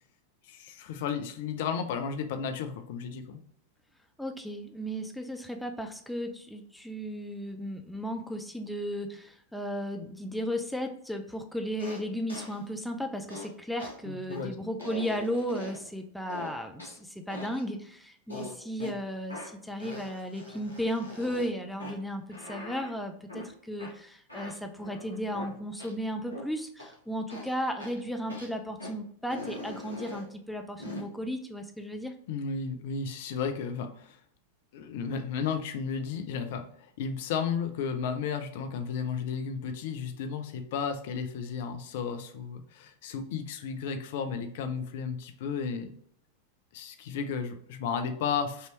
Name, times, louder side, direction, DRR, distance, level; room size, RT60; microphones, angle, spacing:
voice 1, 0.5-3.4 14.0-14.7 32.3-34.2 34.7-45.9 46.7-48.7, left 6 dB, 55° left, 7 dB, 0.5 m, -33 dB
voice 2, 4.2-32.1, equal, ahead, 4 dB, 0.6 m, -35 dB
sound 1, 11.8-12.0 12.3-12.6 13.3-13.5 13.8-13.9 14.3-14.4 14.8-15.9 16.3-17.0 17.3-17.6 18.3-18.9 19.3-19.5 19.8-21.5 21.8-22.0 22.3-22.9 23.3-23.5 23.8-23.9 24.3-25.5 25.8-25.9 26.3-26.4 26.8-26.9 27.3-27.5 27.8-28.0 28.3-28.5 28.8-28.9 29.3-30.3 30.8-31.0, left 2 dB, 85° left, 1.1 m, -42 dB
5.5 x 3.0 x 3.1 m, 0.65 s
figure-of-eight pair, 90°, 0 cm